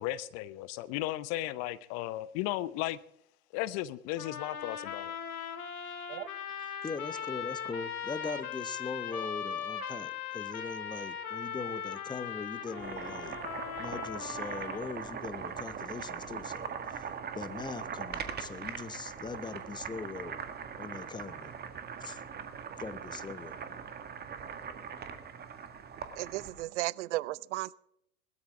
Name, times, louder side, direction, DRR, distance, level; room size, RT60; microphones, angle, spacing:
voice 1, 0.0-3.0 3.5-5.1, left 15 dB, 35° left, 18 dB, 0.6 m, -35 dB
sound 1, 4.2-15.2, left 8 dB, 75° left, 2.2 m, -39 dB
voice 2, 6.8-13.4 13.8-17.0 17.3-20.4 20.8-21.5 22.0-22.2 22.8-23.6, left 4 dB, 10° left, 13 dB, 0.9 m, -41 dB
Boiling, 12.6-26.6, right 7 dB, 20° right, 1.8 m, -41 dB
voice 3, 26.2-27.7, right 17 dB, 55° right, 22 dB, 0.6 m, -35 dB
20.5 x 13.0 x 3.6 m, 0.75 s
hypercardioid pair, 100°, 43 cm